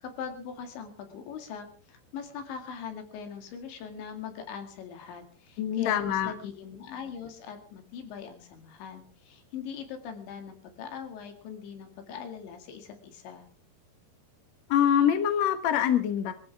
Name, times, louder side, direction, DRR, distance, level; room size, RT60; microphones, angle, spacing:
voice 1, 0.0-13.5, left 7 dB, 85° left, 6 dB, 4.5 m, -41 dB
voice 2, 5.6-6.3 14.7-16.3, left 9 dB, 60° left, 9 dB, 1.8 m, -24 dB
23.0 x 15.0 x 3.5 m, 0.39 s
omnidirectional pair, 5.1 m